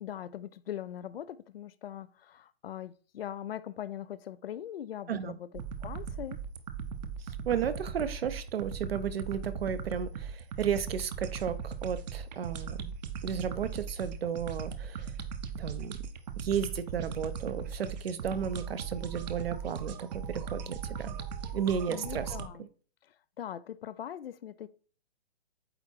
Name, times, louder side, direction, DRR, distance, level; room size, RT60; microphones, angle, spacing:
voice 1, 0.0-5.5 5.8-6.4 21.9-22.7 23.0-24.7, left 10 dB, 65° left, 0.6 m, -41 dB
sound 1, 5.5-22.5, right 7 dB, 40° right, 0.9 m, -38 dB
voice 2, 7.4-12.9 13.2-15.1 15.6-15.9 16.4-21.2 21.5-22.3, right 7 dB, 65° right, 1.0 m, -33 dB
8.9 x 3.6 x 4.6 m
hypercardioid pair, 145°, 32 cm